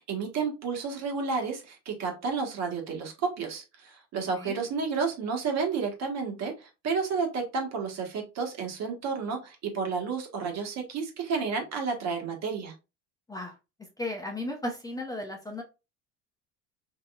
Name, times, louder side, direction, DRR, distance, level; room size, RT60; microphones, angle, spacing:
voice 1, 0.0-12.7, right 5 dB, 50° right, 2 dB, 1.5 m, -31 dB
voice 2, 14.0-15.6, left 1 dB, 10° left, 3 dB, 0.7 m, -35 dB
3.8 x 2.9 x 2.4 m, 0.27 s
supercardioid pair, 105°, 34 cm